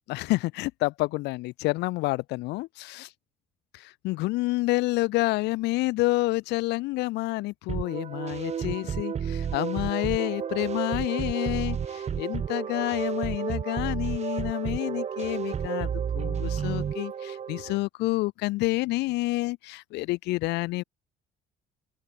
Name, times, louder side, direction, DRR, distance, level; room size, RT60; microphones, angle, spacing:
voice 1, 0.1-3.1 3.7-20.8, left 21 dB, 85° left, 0.6 m, -29 dB
sound 1, 7.7-17.8, right 7 dB, 40° right, 1.8 m, -31 dB
open air
cardioid pair, 110°, 17 cm